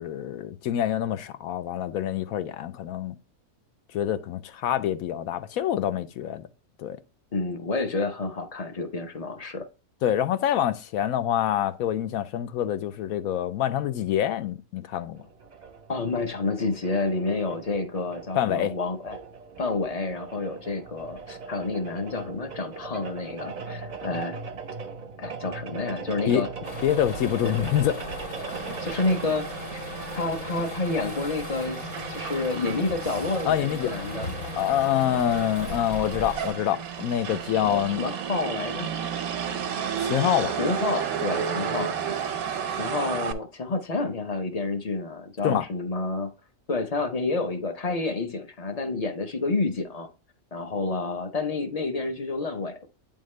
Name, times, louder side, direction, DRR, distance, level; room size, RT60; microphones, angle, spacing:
voice 1, 0.0-3.1 3.9-6.5 6.8-7.0 10.0-15.2 18.4-18.8 26.3-26.4 26.8-28.0 33.5-33.9 34.6-38.0 40.0-40.6 45.4-45.6, left 10 dB, 85° left, 1.0 m, -26 dB
voice 2, 7.3-9.7 15.9-19.2 19.6-24.4 25.2-26.5 27.4-27.5 28.8-29.8 30.2-34.3 37.6-38.9 40.6-42.2 42.7-46.3 46.7-50.1 50.5-52.9, left 3 dB, 40° left, 0.5 m, -29 dB
sound 1, 15.1-29.2, right 5 dB, 50° right, 0.5 m, -40 dB
sound 2, 26.6-36.5, left 2 dB, 60° left, 2.0 m, -37 dB
Motor vehicle (road), 28.5-43.3, right 8 dB, 90° right, 1.2 m, -33 dB
8.7 x 3.6 x 3.1 m
omnidirectional pair, 1.5 m